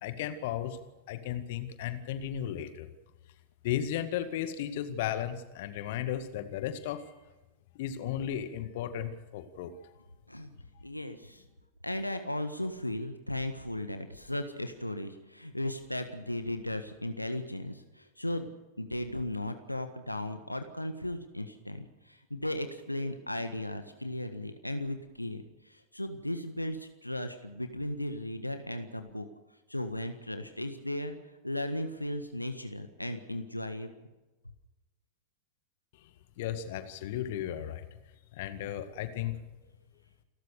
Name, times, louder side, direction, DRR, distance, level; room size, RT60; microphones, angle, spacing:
voice 1, 0.0-0.8 1.1-2.9 3.6-7.1 7.7-9.9 36.0-36.1 36.4-38.0 38.3-39.4, left 10 dB, 50° left, 10 dB, 2.0 m, -35 dB
voice 2, 10.8-11.4 11.8-18.5 18.8-29.3 29.7-31.1 31.4-33.9, left 1 dB, 85° left, 8 dB, 1.6 m, -36 dB
29.0 x 13.5 x 6.8 m, 1.1 s
figure-of-eight pair, 90°, 0 cm